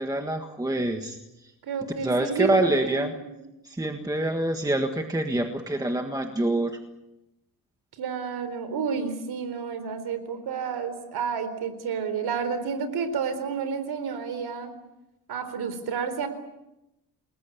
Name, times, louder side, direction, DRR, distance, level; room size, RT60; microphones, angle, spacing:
voice 1, 0.0-1.5 2.0-3.1 3.6-6.8, right 1 dB, 10° right, 4 dB, 1.7 m, -26 dB
voice 2, 1.6-3.3 8.0-14.7 15.3-16.3, right 6 dB, 85° right, 11 dB, 4.2 m, -30 dB
29.0 x 20.5 x 8.5 m, 0.92 s
wide cardioid pair, 155°, 37 cm